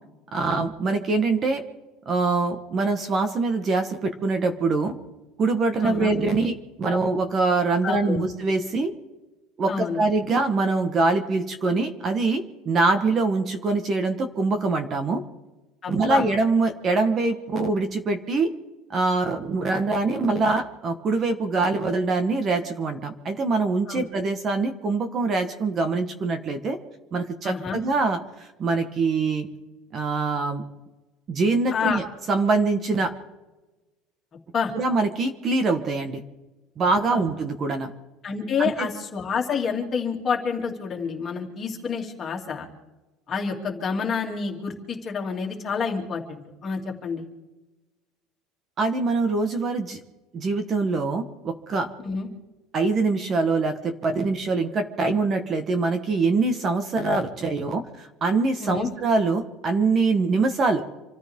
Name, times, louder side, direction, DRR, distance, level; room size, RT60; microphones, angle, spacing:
voice 1, 0.3-1.6 2.1-4.9 5.4-8.9 9.6-15.2 15.9-18.5 18.9-26.8 27.1-29.5 29.9-30.6 31.3-33.1 34.7-36.2 36.8-37.9 38.6-38.9 48.8-50.0 50.3-51.9 52.7-60.8, right 3 dB, 30° right, 7 dB, 1.3 m, -24 dB
voice 2, 5.8-6.1 7.8-8.3 9.7-10.0 15.8-16.2 23.9-24.0 27.4-27.8 31.7-32.0 34.5-34.7 37.1-37.2 38.2-42.7 43.3-47.2 52.0-52.3 58.6-58.9, left 5 dB, 25° left, 0 dB, 2.8 m, -28 dB
27.0 x 14.5 x 3.7 m, 1.1 s
cardioid pair, 160°, 0 cm